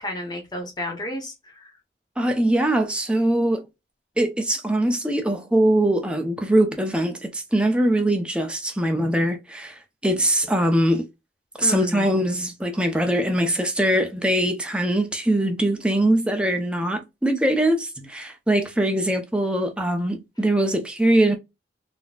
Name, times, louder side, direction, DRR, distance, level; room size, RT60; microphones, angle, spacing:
voice 1, 0.0-1.7 11.6-12.1, left 1 dB, 25° left, 0.8 m, -31 dB
voice 2, 2.2-3.6 4.2-11.0 11.6-21.4, right 1 dB, 5° right, 0.5 m, -22 dB
4.0 x 2.1 x 2.2 m
head